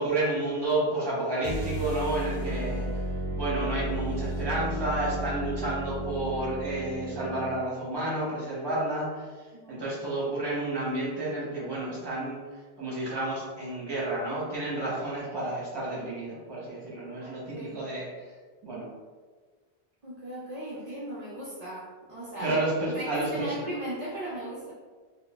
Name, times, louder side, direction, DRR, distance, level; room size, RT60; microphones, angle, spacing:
voice 1, 0.0-18.3 18.6-18.9 22.4-23.6, right 2 dB, 25° right, -6 dB, 0.8 m, -31 dB
sound 1, 1.4-7.7, right 1 dB, 40° left, 1.7 m, -33 dB
voice 2, 9.5-9.8 17.2-17.8 20.0-22.6 22.9-24.7, right 1 dB, 55° right, -6 dB, 0.5 m, -37 dB
3.9 x 2.2 x 2.2 m, 1.5 s
omnidirectional pair, 1.1 m